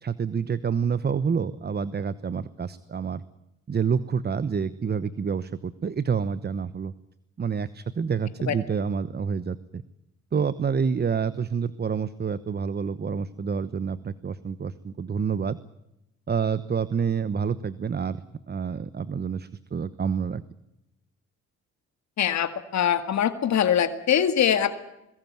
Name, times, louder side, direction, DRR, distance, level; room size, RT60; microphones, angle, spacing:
voice 1, 0.0-3.2 3.7-6.9 7.4-9.8 10.3-15.6 16.3-20.4, right 6 dB, 35° right, 16 dB, 1.1 m, -28 dB
voice 2, 22.2-24.8, left 9 dB, 65° left, 10 dB, 2.0 m, -23 dB
22.0 x 19.5 x 9.5 m, 0.88 s
cardioid pair, 90°, 30 cm